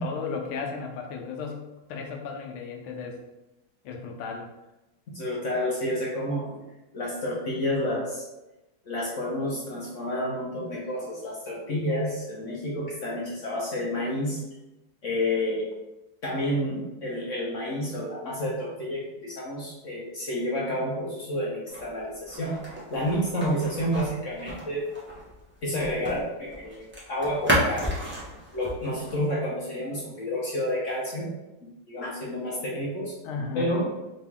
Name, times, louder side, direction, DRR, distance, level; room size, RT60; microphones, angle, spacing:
voice 1, 0.0-3.2 3.8-4.5 33.2-33.7, left 5 dB, 80° left, 2 dB, 1.5 m, -34 dB
voice 2, 5.1-6.6 6.9-8.2 8.8-14.4 15.0-15.7 16.2-24.9 25.6-27.9 28.5-31.3 31.6-33.1 33.5-33.9, left 1 dB, 55° left, -5 dB, 0.9 m, -30 dB
sound 1, 21.7-26.2 26.5-29.2, equal, 15° right, 0.4 m, -32 dB
4.0 x 2.9 x 3.5 m, 0.98 s
omnidirectional pair, 2.3 m